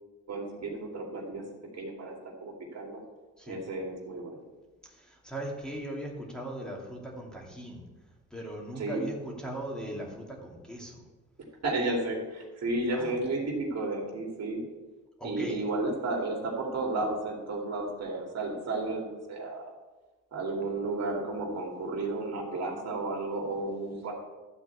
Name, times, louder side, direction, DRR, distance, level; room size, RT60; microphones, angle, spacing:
voice 1, 0.3-1.4 1.7-3.0 3.5-4.4 8.7-9.1 11.6-14.6 15.2-19.7 20.3-24.1, right 2 dB, 60° right, 0 dB, 2.6 m, -33 dB
voice 2, 4.8-7.9 8.3-11.0 12.9-13.2 15.2-15.6, right 1 dB, 5° left, -2 dB, 2.6 m, -39 dB
12.5 x 4.5 x 8.2 m, 1.2 s
cardioid pair, 90°, 30 cm